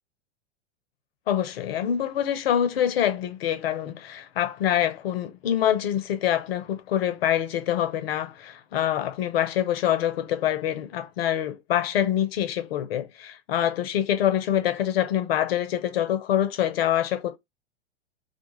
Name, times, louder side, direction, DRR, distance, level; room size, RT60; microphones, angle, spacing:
voice 1, 1.3-17.4, left 10 dB, 65° left, 0.7 m, -25 dB
2.4 x 2.3 x 2.9 m
figure-of-eight pair, 95°, 33 cm